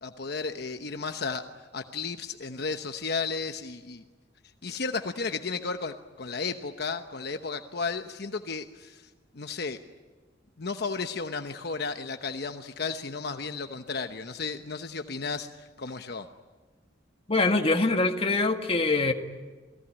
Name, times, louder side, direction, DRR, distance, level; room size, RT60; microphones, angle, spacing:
voice 1, 0.0-4.0 4.6-9.1 9.3-9.8 10.6-16.3, left 4 dB, 65° left, 7 dB, 1.0 m, -34 dB
voice 2, 17.3-19.1, left 3 dB, 35° left, 5 dB, 1.8 m, -24 dB
28.5 x 20.0 x 10.0 m, 1.3 s
head